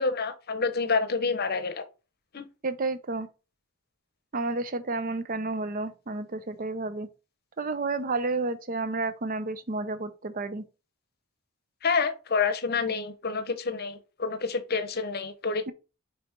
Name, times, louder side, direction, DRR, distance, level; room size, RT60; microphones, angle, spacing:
voice 1, 0.0-1.8 2.3-2.5 11.8-15.7, left 4 dB, 45° left, 0.8 m, -28 dB
voice 2, 2.6-3.3 4.3-7.1 7.6-10.6 15.7-15.8, right 3 dB, 40° right, 0.6 m, -31 dB
5.5 x 4.1 x 4.5 m
head